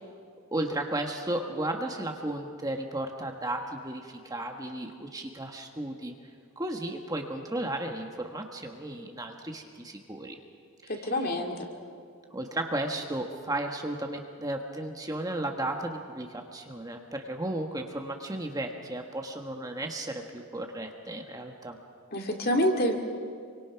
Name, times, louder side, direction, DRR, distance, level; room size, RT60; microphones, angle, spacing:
voice 1, 0.5-6.1 6.6-10.4 10.8-11.1 12.3-21.8, right 1 dB, 15° right, 3 dB, 1.4 m, -34 dB
voice 2, 10.9-11.7 22.1-22.9, equal, 45° left, 3 dB, 2.6 m, -27 dB
27.5 x 24.5 x 5.8 m, 2.2 s
head